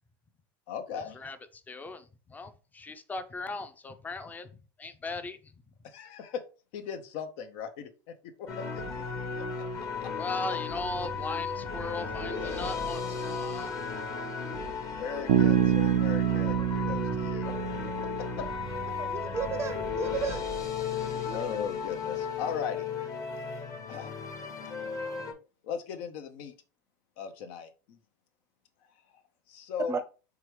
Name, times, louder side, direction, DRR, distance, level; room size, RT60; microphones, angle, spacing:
voice 1, 0.7-1.2 5.8-6.4 6.7-8.8 10.0-10.1 14.9-17.5 18.4-18.5 21.0-22.8 23.9-24.1 25.6-26.5 27.2-28.0 29.5-30.0, left 7 dB, 65° left, 0.7 m, -38 dB
voice 2, 1.7-4.5 4.8-5.5 10.2-13.7 16.9-17.0, left 3 dB, 15° left, 0.6 m, -38 dB
sound 1, 8.5-25.3, left 5 dB, 35° left, 1.1 m, -35 dB
Bass guitar, 15.3-19.0, right 10 dB, 80° right, 0.4 m, -27 dB
voice 3, 19.0-20.4 21.0-21.4 29.9-30.0, right 6 dB, 25° right, 0.6 m, -34 dB
4.8 x 3.4 x 3.2 m
supercardioid pair, 110°, 10 cm